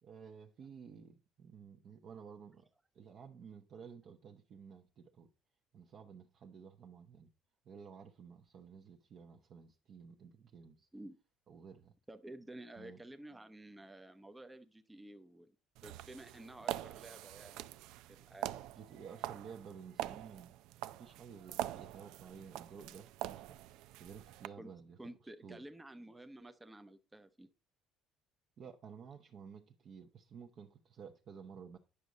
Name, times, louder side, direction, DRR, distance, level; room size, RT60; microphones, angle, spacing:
voice 1, 0.0-2.7 2.9-5.3 5.7-7.3 7.6-10.9 11.5-11.9 12.8-13.0 18.7-20.6 20.9-23.6 24.0-25.0 25.4-25.6 28.6-31.8, right 6 dB, 45° right, 1.0 m, -53 dB
voice 2, 12.1-15.5 15.8-17.8 18.1-18.8 24.6-24.7 25.0-27.5, right 1 dB, 10° right, 0.7 m, -52 dB
sound 1, 15.8-24.5, right 14 dB, 80° right, 0.5 m, -44 dB
10.0 x 6.2 x 3.9 m
cardioid pair, 145°, 0 cm